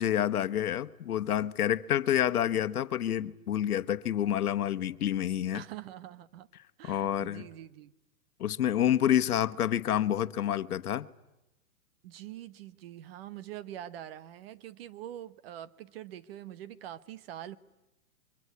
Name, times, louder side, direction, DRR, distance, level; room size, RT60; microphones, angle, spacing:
voice 1, 0.0-5.6 6.8-7.5 8.4-11.1, left 11 dB, 85° left, 1.2 m, -28 dB
voice 2, 5.5-6.5 6.8-7.9 12.0-17.6, right 12 dB, 40° right, 1.0 m, -44 dB
26.0 x 24.0 x 9.6 m
hypercardioid pair, 155°, 43 cm